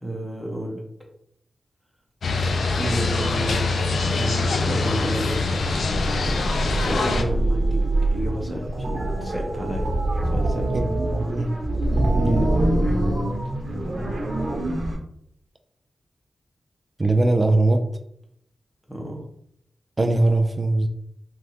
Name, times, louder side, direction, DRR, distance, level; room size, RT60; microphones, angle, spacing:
voice 1, 0.0-0.8 2.7-3.7 4.1-5.4 6.7-7.8 8.1-9.9 10.2-10.7 12.1-13.3 18.9-19.2, right 1 dB, ahead, -1 dB, 0.9 m, -30 dB
sound 1, 2.2-7.2, left 3 dB, 80° left, 0.4 m, -24 dB
sound 2, 5.5-15.0, right 1 dB, 80° right, 1.0 m, -24 dB
voice 2, 10.7-11.5 17.0-17.8 20.0-20.9, right 2 dB, 30° right, 5 dB, 0.4 m, -20 dB
3.3 x 2.4 x 2.8 m, 0.71 s
wide cardioid pair, 95°, 0 cm